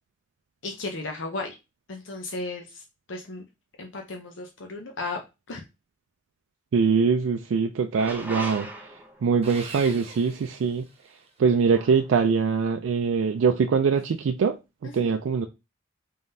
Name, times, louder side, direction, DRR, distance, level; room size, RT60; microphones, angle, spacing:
voice 1, 0.6-1.6 1.9-3.4 3.8-5.2 5.5-5.6 15.0-15.1, left 3 dB, 70° left, 0.7 m, -35 dB
voice 2, 6.7-8.7 9.2-10.9 11.4-14.6 14.8-15.5, right 5 dB, 80° right, 0.4 m, -23 dB
sound 1, 8.0-9.3 11.7-12.1, right 1 dB, 10° right, 0.7 m, -38 dB
Sawing, 9.4-11.3, right 3 dB, 35° right, 0.9 m, -42 dB
3.7 x 3.6 x 2.7 m
head